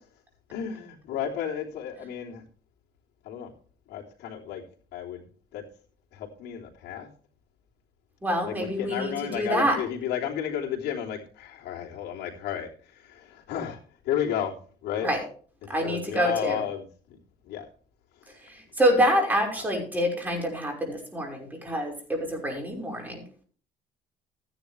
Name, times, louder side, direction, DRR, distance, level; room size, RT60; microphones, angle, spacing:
voice 1, 0.5-2.4 3.2-3.5 3.9-4.6 4.9-5.3 5.5-5.6 6.1-7.1 8.4-13.8 14.0-14.6 14.8-15.1 15.6-17.2 17.4-17.7, left 9 dB, 85° left, -1 dB, 3.3 m, -32 dB
voice 2, 8.2-9.8 15.0-15.2 15.7-16.6 18.4-23.2, equal, 10° right, 1 dB, 5.6 m, -26 dB
14.5 x 10.5 x 3.4 m, 0.42 s
cardioid pair, 110°, 17 cm